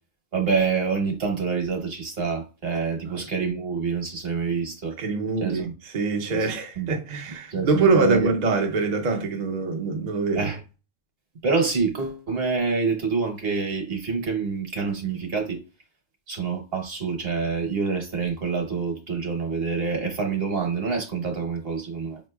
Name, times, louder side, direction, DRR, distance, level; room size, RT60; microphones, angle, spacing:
voice 1, 0.3-4.9 5.4-5.7 6.8-6.9 7.5-8.3 10.3-10.6 11.4-15.6 16.3-22.2, right 5 dB, 65° right, 1.3 m, -26 dB
voice 2, 5.0-10.5, right 3 dB, 50° right, 0.6 m, -24 dB
5.1 x 2.9 x 2.2 m
omnidirectional pair, 1.1 m